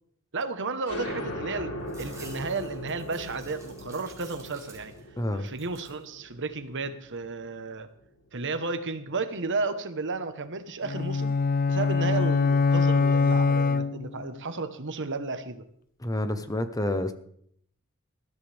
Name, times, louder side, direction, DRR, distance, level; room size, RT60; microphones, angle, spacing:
voice 1, 0.3-4.9 5.3-7.9 8.3-11.4 11.7-15.6, right 3 dB, 55° right, 9 dB, 1.3 m, -33 dB
sound 1, 0.9-8.1, equal, 75° left, 4.2 m, -39 dB
sound 2, 1.9-5.2 5.5-6.0 6.5-7.2, right 3 dB, 15° right, 5.2 m, -51 dB
voice 2, 5.2-5.5 16.0-17.1, left 1 dB, 15° left, 9 dB, 0.9 m, -28 dB
sound 3, 10.8-14.4, left 4 dB, 40° left, 0.6 m, -23 dB
20.0 x 13.5 x 3.5 m, 0.67 s
head